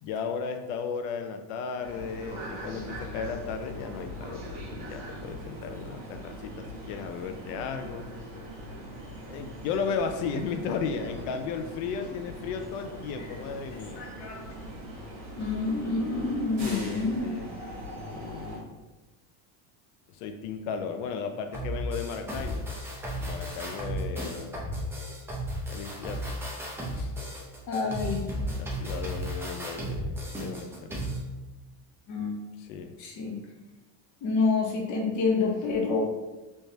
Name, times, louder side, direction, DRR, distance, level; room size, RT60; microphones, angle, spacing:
voice 1, 0.0-8.1 9.3-14.1 16.6-17.5 17.9-18.7 20.1-22.7 23.1-24.7 25.7-26.4 26.9-27.1 27.8-28.0 28.6-30.9 32.6-32.9, left 6 dB, 80° left, 6 dB, 0.5 m, -35 dB
sound 1, 1.8-18.6, equal, 45° right, 1.2 m, -41 dB
voice 2, 14.0-14.4 15.4-17.3 27.7-28.4 28.8-28.9 32.1-32.4 33.0-33.4 34.2-36.0, left 4 dB, 40° left, 1 dB, 0.8 m, -28 dB
sound 2, 21.5-31.2, equal, 5° right, 0.5 m, -34 dB
3.4 x 3.1 x 2.7 m, 1.1 s
cardioid pair, 140°, 45 cm